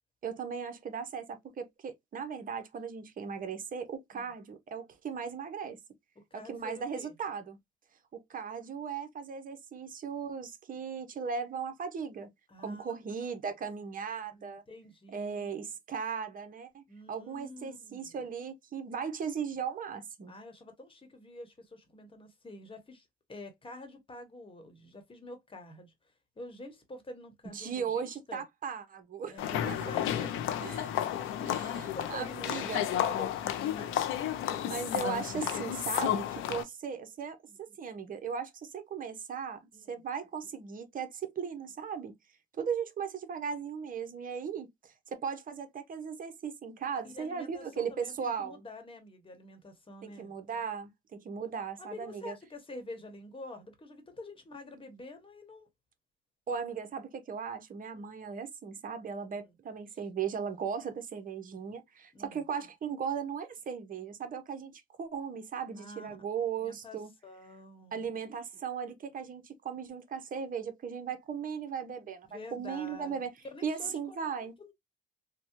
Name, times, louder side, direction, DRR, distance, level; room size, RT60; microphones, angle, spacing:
voice 1, 0.2-5.8 6.3-7.6 8.1-12.3 12.6-14.6 15.1-20.3 27.5-29.4 29.7-29.8 30.6-30.9 31.4-32.8 34.6-39.6 39.9-42.1 42.6-48.6 50.0-52.3 56.5-67.1 67.9-73.3 73.6-74.5, right 6 dB, 45° right, 0.8 m, -37 dB
voice 2, 6.1-7.2 12.5-13.3 14.3-15.5 16.9-18.2 20.3-28.4 29.2-30.4 30.7-30.8 31.2-33.9 34.5-34.6 39.7-40.0 47.0-50.3 51.8-55.7 57.9-58.1 59.4-59.5 62.1-62.4 65.7-66.1 66.6-67.0 67.2-68.0 72.3-73.2 73.5-74.7, left 2 dB, 25° left, 1.2 m, -48 dB
sound 1, 29.4-36.6, left 11 dB, 90° left, 0.5 m, -32 dB
3.3 x 2.2 x 2.9 m
cardioid pair, 90°, 20 cm